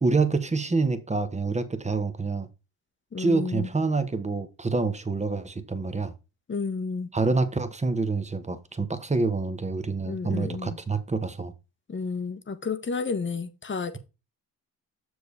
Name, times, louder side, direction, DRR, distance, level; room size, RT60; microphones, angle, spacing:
voice 1, 0.0-2.5 3.2-6.1 7.1-11.5, right 3 dB, 15° right, 1.2 m, -27 dB
voice 2, 3.1-3.7 6.5-7.1 10.0-10.8 11.9-14.0, left 4 dB, 25° left, 1.2 m, -31 dB
6.8 x 6.3 x 3.3 m
hypercardioid pair, 60°, 45 cm